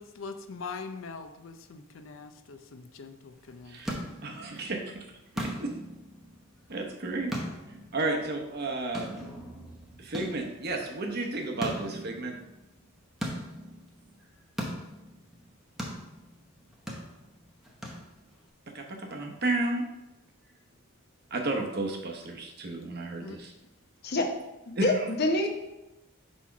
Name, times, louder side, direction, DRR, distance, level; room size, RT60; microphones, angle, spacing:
voice 1, 0.0-4.1 23.2-23.4, left 4 dB, 75° left, 8 dB, 0.5 m, -43 dB
sound 1, 3.3-18.5, equal, ahead, 0.8 m, -41 dB
voice 2, 4.2-5.2 5.4-5.7 6.7-7.3 7.9-9.2 10.0-12.3 18.7-19.8 21.3-23.5 24.8-25.1, right 2 dB, 50° right, 2 dB, 0.9 m, -32 dB
voice 3, 24.8-25.5, left 2 dB, 55° left, 3 dB, 0.9 m, -25 dB
4.4 x 4.3 x 5.8 m, 0.98 s
head